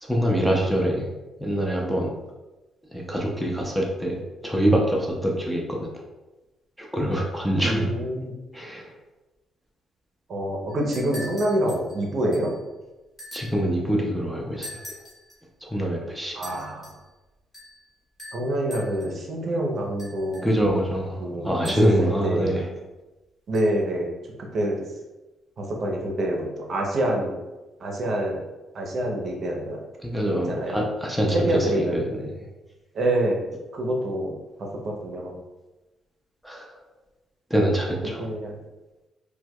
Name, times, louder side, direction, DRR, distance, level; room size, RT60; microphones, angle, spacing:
voice 1, 0.0-1.1 1.4-2.1 2.9-4.2 4.4-5.9 6.8-7.9 8.5-8.9 13.3-14.8 15.6-16.4 20.4-22.6 30.0-32.2 36.4-36.8 37.5-38.2, equal, ahead, -2 dB, 0.6 m, -25 dB
voice 2, 7.6-8.4 10.3-12.5 16.3-16.9 18.3-20.5 21.2-22.6 23.5-24.1 24.4-24.8 25.6-27.3 27.8-28.4 28.7-29.8 30.2-30.8 31.3-32.0 32.9-33.4 33.7-35.3 38.2-38.6, right 1 dB, 55° right, 0 dB, 0.7 m, -26 dB
sound 1, 10.7-12.6 13.2-13.7 14.6-15.4 16.4-17.0 17.5-17.9 18.2-19.2 20.0-20.7 21.6-22.1 23.5-23.6, left 1 dB, 15° left, 1.5 m, -43 dB
4.5 x 2.2 x 2.2 m, 1.1 s
cardioid pair, 90°, 0 cm